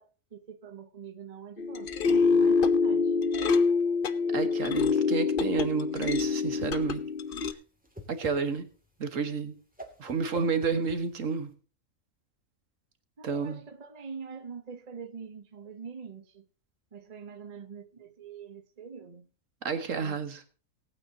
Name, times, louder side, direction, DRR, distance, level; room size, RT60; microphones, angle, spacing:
voice 1, 0.0-1.9 2.3-3.2 13.2-16.5 16.9-19.3 19.9-20.2, right 6 dB, 30° right, 1.0 m, -44 dB
sound 1, 1.6-7.5, left 4 dB, 45° left, 0.8 m, -25 dB
voice 2, 4.3-7.0 8.1-8.7 9.0-9.5 10.0-11.5 13.2-13.6 19.6-20.4, right 5 dB, 70° right, 1.7 m, -30 dB
Whoosh swoosh swish, 6.0-11.5, equal, 5° right, 2.3 m, -49 dB
19.0 x 8.9 x 2.8 m
omnidirectional pair, 1.4 m